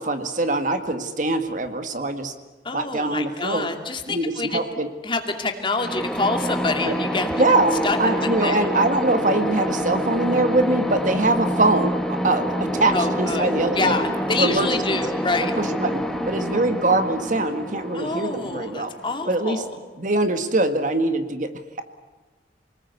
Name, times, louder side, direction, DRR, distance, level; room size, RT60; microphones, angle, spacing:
voice 1, 0.0-2.3 2.7-3.7 4.1-4.9 6.8-7.0 7.4-11.9 12.2-14.0 14.4-15.1 15.4-18.9 19.3-19.6 20.0-21.5, right 2 dB, 45° right, 8 dB, 1.9 m, -23 dB
voice 2, 2.6-4.6 5.0-7.3 7.8-8.0 8.4-8.6 12.9-13.5 13.7-15.5 17.9-19.7, left 3 dB, 30° left, 4 dB, 2.6 m, -26 dB
sound 1, 5.8-19.5, equal, ahead, 1.5 m, -27 dB
28.5 x 20.0 x 8.3 m, 1.3 s
head